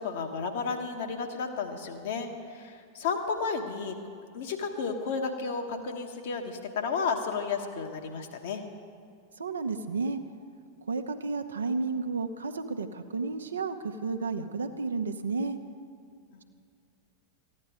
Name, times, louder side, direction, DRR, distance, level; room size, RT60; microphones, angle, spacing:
voice 1, 0.0-3.9 4.3-8.6 16.3-16.4, left 5 dB, 55° left, 4 dB, 1.1 m, -32 dB
voice 2, 9.4-10.2 10.9-15.6, right 4 dB, 70° right, 8 dB, 0.6 m, -32 dB
14.5 x 9.8 x 4.9 m, 2.4 s
figure-of-eight pair, 90°, 0 cm